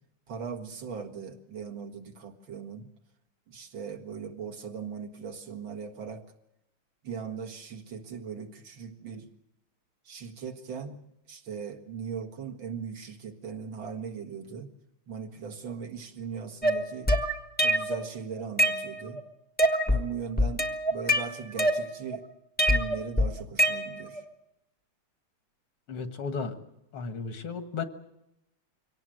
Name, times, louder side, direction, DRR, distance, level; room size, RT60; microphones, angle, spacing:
voice 1, 0.3-2.9 3.5-6.3 7.0-9.3 10.0-11.0 11.3-14.7 15.1-17.1 17.6-19.2 19.9-22.2 22.6-24.3, right 6 dB, 65° right, 4 dB, 2.5 m, -39 dB
sound 1, 16.6-18.0 18.4-19.2 19.6-20.1 20.4-22.2 22.6-24.2, equal, 5° left, 0.9 m, -25 dB
voice 2, 25.9-26.6 26.9-27.8, left 5 dB, 80° left, 9 dB, 2.4 m, -34 dB
24.5 x 18.0 x 7.7 m, 0.86 s
omnidirectional pair, 2.3 m